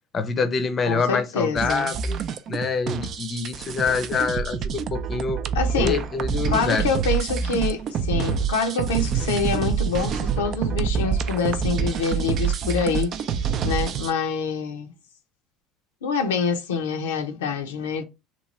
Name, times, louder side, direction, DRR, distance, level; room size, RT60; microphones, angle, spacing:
voice 1, 0.1-2.2 2.5-5.4 5.8-6.9, left 4 dB, 35° left, 0.5 m, -26 dB
voice 2, 0.9-1.9 5.5-6.0 6.5-13.1 13.6-14.9 16.0-18.0, left 5 dB, 85° left, 0.5 m, -26 dB
sound 1, 1.6-14.1, right 7 dB, 50° right, 0.4 m, -26 dB
3.0 x 2.3 x 4.0 m
hypercardioid pair, 75°, 0 cm